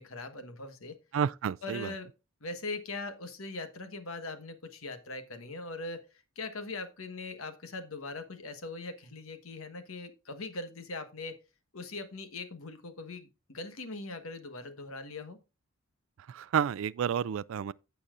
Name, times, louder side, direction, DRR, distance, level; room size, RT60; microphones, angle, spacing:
voice 1, 0.0-1.0 1.6-2.1 2.4-6.1 6.3-11.4 11.7-15.4, left 3 dB, 70° left, 1.3 m, -41 dB
voice 2, 1.1-1.9 16.3-17.7, right 8 dB, 65° right, 0.3 m, -30 dB
15.5 x 5.6 x 2.5 m
head